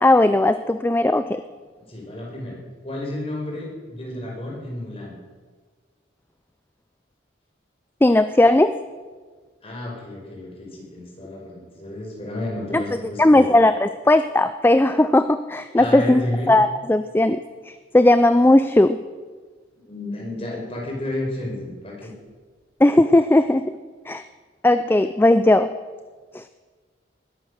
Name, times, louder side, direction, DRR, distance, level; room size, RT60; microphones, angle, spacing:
voice 1, 0.0-1.4 8.0-8.8 12.7-12.8 13.2-19.0 22.8-23.8 24.1-24.2 24.6-25.7 26.3-26.4, left 1 dB, 10° left, 11 dB, 0.3 m, -17 dB
voice 2, 1.9-5.2 9.6-13.5 15.8-16.5 19.9-22.1, left 1 dB, 30° left, -2 dB, 5.0 m, -31 dB
20.5 x 10.5 x 6.6 m, 1.5 s
head